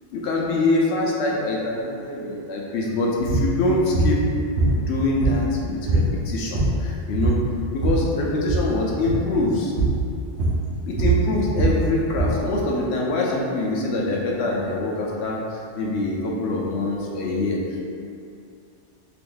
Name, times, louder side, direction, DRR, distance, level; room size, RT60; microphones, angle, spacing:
voice 1, 0.1-4.2 4.8-7.4 7.7-9.7 10.9-17.8, left 2 dB, 75° left, -2 dB, 0.9 m, -24 dB
sound 1, 3.3-3.5 3.9-4.2 4.6-5.6 5.9-6.1 6.4-6.9 7.1-8.1 8.4-8.7 9.1-9.3 9.8-10.0 10.4-12.4, right 2 dB, 65° right, 0.9 m, -22 dB
3.7 x 2.9 x 2.5 m, 2.4 s
omnidirectional pair, 1.2 m